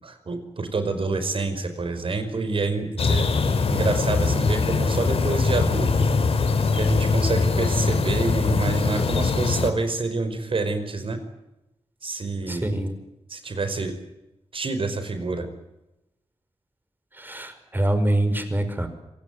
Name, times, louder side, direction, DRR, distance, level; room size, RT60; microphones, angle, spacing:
voice 1, 0.0-3.3 3.7-6.1 6.7-11.2 12.0-12.8 13.3-14.0 14.5-15.5, right 3 dB, 60° right, 9 dB, 5.2 m, -27 dB
sound 1, 3.0-9.7, left 4 dB, 65° left, 3.5 m, -22 dB
voice 2, 12.5-13.0 17.2-18.9, right 1 dB, 20° right, 9 dB, 5.5 m, -25 dB
26.0 x 19.0 x 9.6 m, 0.94 s
cardioid pair, 70°, 11 cm